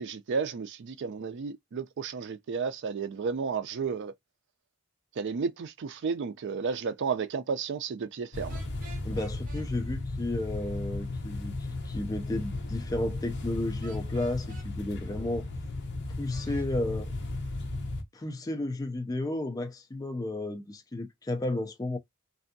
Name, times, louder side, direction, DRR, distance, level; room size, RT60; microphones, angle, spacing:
voice 1, 0.0-4.1 5.2-8.6, right 5 dB, 55° right, 0.4 m, -32 dB
sound 1, 8.3-18.0, left 2 dB, 55° left, 0.8 m, -35 dB
sound 2, 8.5-9.7 13.8-14.7 16.3-16.7, right 2 dB, 40° right, 1.0 m, -50 dB
voice 2, 9.0-15.5 16.2-17.1 18.1-22.0, left 1 dB, 15° left, 0.4 m, -33 dB
3.3 x 2.6 x 2.6 m
head